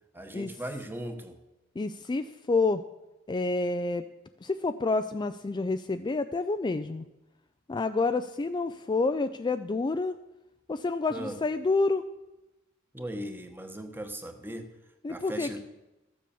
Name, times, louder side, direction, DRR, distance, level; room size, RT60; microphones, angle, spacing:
voice 1, 0.1-1.4 11.1-11.4 12.9-14.7 15.1-15.6, right 1 dB, 10° right, 6 dB, 1.1 m, -38 dB
voice 2, 1.8-2.8 3.3-4.0 4.4-7.0 7.7-10.1 10.7-12.0 15.0-15.6, left 3 dB, 20° left, 9 dB, 0.4 m, -28 dB
13.5 x 7.5 x 7.0 m, 0.98 s
head